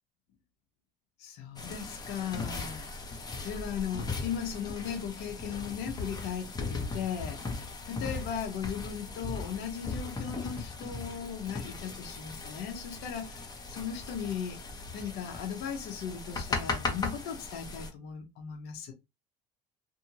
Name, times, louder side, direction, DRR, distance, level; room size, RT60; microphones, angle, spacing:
voice 1, 1.2-2.9 3.4-14.6 14.9-18.9, left 8 dB, 70° left, 0.9 m, -37 dB
sound 1, 1.6-17.9, left 3 dB, 20° left, 1.0 m, -38 dB
2.7 x 2.6 x 2.7 m
supercardioid pair, 100°, 17 cm